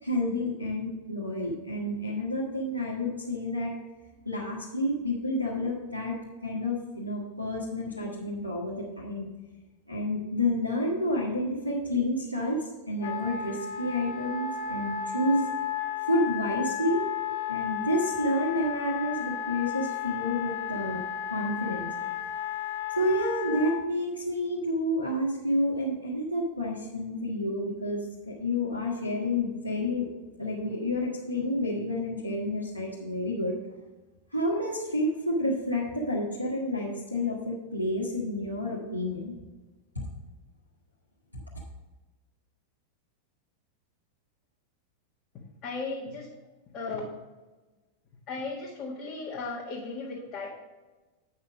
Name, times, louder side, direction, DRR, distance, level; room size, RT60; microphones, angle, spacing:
voice 1, 0.0-3.7 4.2-6.2 6.4-9.3 9.9-15.4 16.1-17.0 17.5-21.0 21.3-21.9 23.0-30.1 30.4-33.6 34.3-39.3 41.3-41.4, left 1 dB, 85° left, -7 dB, 1.4 m, -29 dB
Wind instrument woodwind instrument, 13.0-23.8, left 9 dB, 50° left, 1.0 m, -33 dB
voice 2, 45.6-46.3 46.7-47.1 48.3-50.5, left 3 dB, 35° left, -5 dB, 1.6 m, -36 dB
8.6 x 5.8 x 5.0 m, 1.2 s
figure-of-eight pair, 90°, 0 cm